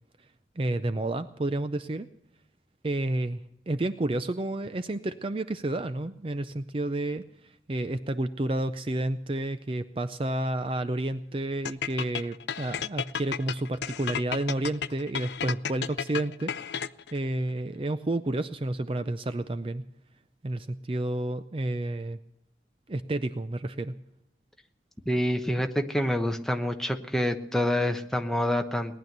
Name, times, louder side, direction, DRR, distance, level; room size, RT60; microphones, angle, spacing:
voice 1, 0.6-2.1 2.8-16.5 17.1-19.8 20.4-22.2 22.9-23.9, right 1 dB, 30° right, 11 dB, 0.5 m, -30 dB
sound 1, 11.6-17.2, left 7 dB, 80° left, 0.5 m, -33 dB
voice 2, 25.1-29.0, left 1 dB, 5° left, 5 dB, 1.0 m, -27 dB
19.0 x 11.0 x 6.7 m, 0.81 s
head